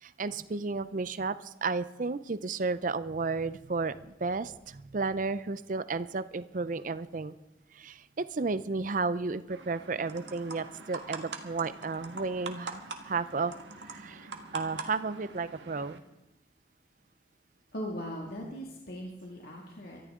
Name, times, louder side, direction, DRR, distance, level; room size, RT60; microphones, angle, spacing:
voice 1, 0.0-7.3 7.7-13.5 13.8-14.3 14.5-16.0, right 4 dB, 45° right, 14 dB, 0.5 m, -33 dB
sound 1, 9.5-16.0, right 3 dB, 70° right, 1.6 m, -43 dB
voice 2, 17.7-20.0, equal, 55° left, -2 dB, 2.1 m, -39 dB
23.5 x 13.5 x 3.7 m, 0.95 s
head